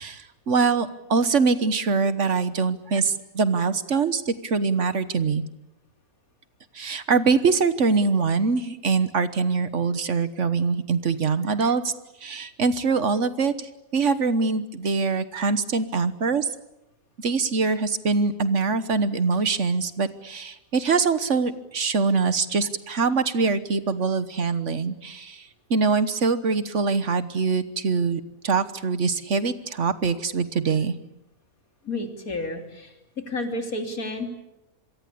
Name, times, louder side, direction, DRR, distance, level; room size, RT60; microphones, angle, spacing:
voice 1, 0.0-5.4 6.7-11.9 12.2-16.5 17.2-30.9, right 4 dB, 55° right, 13 dB, 1.5 m, -23 dB
voice 2, 31.8-32.9 33.3-34.3, left 2 dB, 75° left, 5 dB, 3.7 m, -30 dB
26.0 x 23.0 x 8.6 m, 0.90 s
omnidirectional pair, 1.5 m